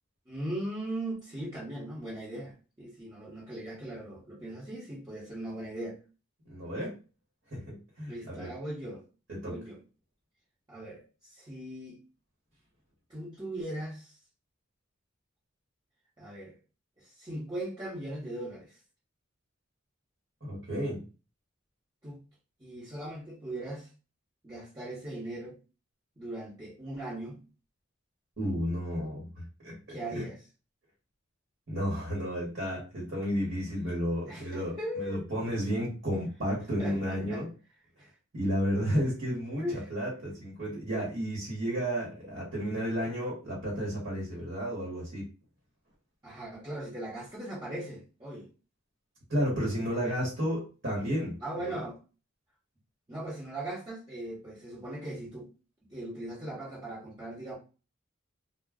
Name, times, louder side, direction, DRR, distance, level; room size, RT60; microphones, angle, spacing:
voice 1, 0.3-6.0 8.1-9.0 9.4-9.8 10.7-11.0 11.3-12.0 13.1-14.2 16.2-16.6 17.0-18.7 22.0-22.2 22.6-23.9 24.4-25.6 26.2-27.4 29.9-30.5 34.3-35.2 36.8-37.4 38.0-38.1 39.6-39.9 46.2-48.5 51.4-52.0 53.1-55.5 55.9-57.5, right 1 dB, 20° right, 0.9 m, -39 dB
voice 2, 6.5-7.0 7.5-8.5 9.3-9.6 20.4-21.0 28.4-30.2 31.7-37.5 38.3-45.3 49.3-51.4 51.6-51.8, equal, 50° right, 1.1 m, -32 dB
2.3 x 2.1 x 3.5 m
head